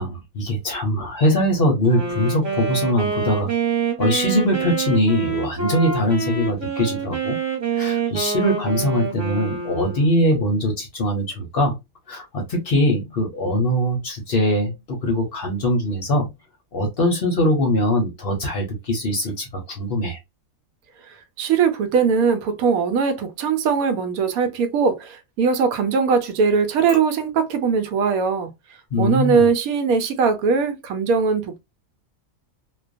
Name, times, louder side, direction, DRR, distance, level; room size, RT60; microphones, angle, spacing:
voice 1, 0.0-3.5 4.0-7.4 7.8-11.8 12.1-16.3 16.7-20.2 28.9-29.5, equal, 50° left, 0.7 m, -22 dB
Wind instrument woodwind instrument, 1.9-10.2, right 6 dB, 35° right, 1.0 m, -26 dB
voice 2, 21.4-28.5 29.0-31.6, right 5 dB, 85° right, 1.0 m, -20 dB
2.4 x 2.2 x 2.4 m
omnidirectional pair, 1.5 m